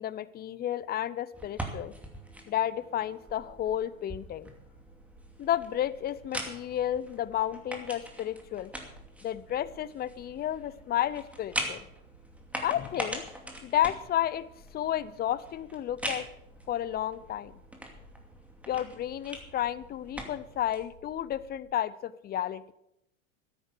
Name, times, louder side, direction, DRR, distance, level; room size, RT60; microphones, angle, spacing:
voice 1, 0.0-1.9 2.5-4.5 5.4-8.7 9.2-11.8 12.6-13.3 13.6-14.5 14.7-16.3 16.7-17.6 18.7-22.6, left 11 dB, 25° left, 18 dB, 0.6 m, -32 dB
sound 1, 1.3-20.8, right 1 dB, 5° right, 2.6 m, -42 dB
sound 2, 4.5-21.7, right 2 dB, 50° right, 4.8 m, -56 dB
13.5 x 9.9 x 6.7 m, 0.82 s
hypercardioid pair, 95°, 40 cm